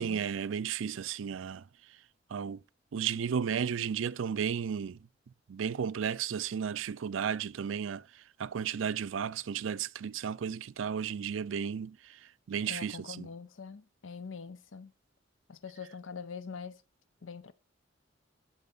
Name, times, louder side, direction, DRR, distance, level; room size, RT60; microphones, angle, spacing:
voice 1, 0.0-1.6 2.3-2.6 2.9-5.0 5.5-12.2 12.5-13.3, right 7 dB, 90° right, 0.4 m, -34 dB
voice 2, 12.7-14.9 15.5-16.8 17.2-17.5, left 5 dB, 85° left, 0.6 m, -44 dB
11.5 x 4.2 x 3.9 m
head